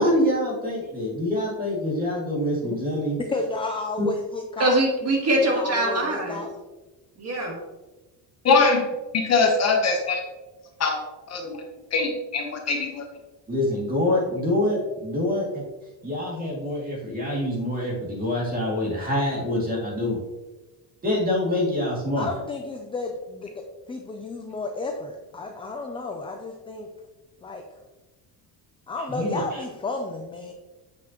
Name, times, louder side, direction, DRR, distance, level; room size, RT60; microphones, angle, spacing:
voice 1, 0.0-3.2 4.0-4.1 13.5-15.4 16.0-20.2 21.0-22.3 29.1-29.6, left 1 dB, 20° right, -3 dB, 2.3 m, -25 dB
voice 2, 3.3-4.8 5.4-6.5 22.2-23.6 23.9-26.9 27.4-27.6 28.9-30.5, left 3 dB, 15° left, 3 dB, 0.3 m, -32 dB
voice 3, 4.6-6.4 7.2-7.6, right 1 dB, 35° right, 0 dB, 1.6 m, -23 dB
voice 4, 8.4-8.9 9.1-10.2 10.8-11.0 11.3-11.6 11.9-13.0, left 4 dB, 35° left, 2 dB, 1.0 m, -22 dB
7.7 x 6.1 x 2.9 m, 1.1 s
cardioid pair, 150°, 44 cm